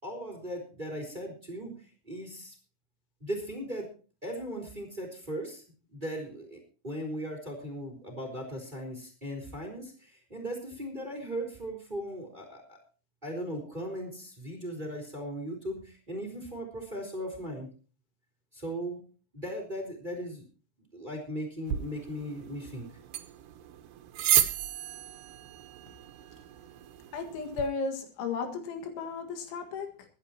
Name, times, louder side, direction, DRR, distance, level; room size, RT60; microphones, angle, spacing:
voice 1, 0.0-2.5 3.2-3.9 4.2-5.6 5.9-6.6 6.8-12.8 13.2-17.7 18.5-19.0 19.3-20.4 20.9-22.9, equal, 10° right, 3.2 m, -38 dB
sound 1, 21.7-27.7, right 12 dB, 75° right, 3.0 m, -33 dB
voice 2, 27.1-30.1, left 4 dB, 80° left, 4.2 m, -34 dB
23.5 x 10.5 x 2.9 m
omnidirectional pair, 5.4 m